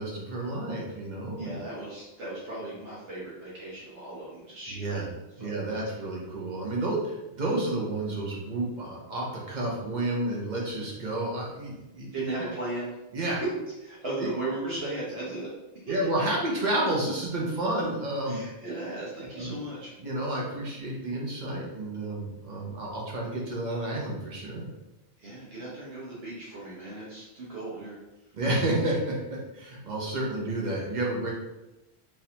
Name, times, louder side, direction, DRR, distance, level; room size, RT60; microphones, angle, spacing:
voice 1, 0.0-1.6 4.7-5.1 5.4-12.2 13.1-13.4 14.2-14.3 14.6-14.7 15.9-18.4 19.4-19.6 20.0-24.7 28.3-31.3, right 1 dB, 45° right, -3 dB, 1.0 m, -30 dB
voice 2, 1.4-5.1 5.4-5.5 12.1-12.9 13.4-13.5 13.8-15.5 15.7-15.8 18.3-19.9 25.2-28.0, right 2 dB, 65° right, -7 dB, 1.2 m, -36 dB
3.8 x 2.6 x 2.9 m, 0.98 s
omnidirectional pair, 1.1 m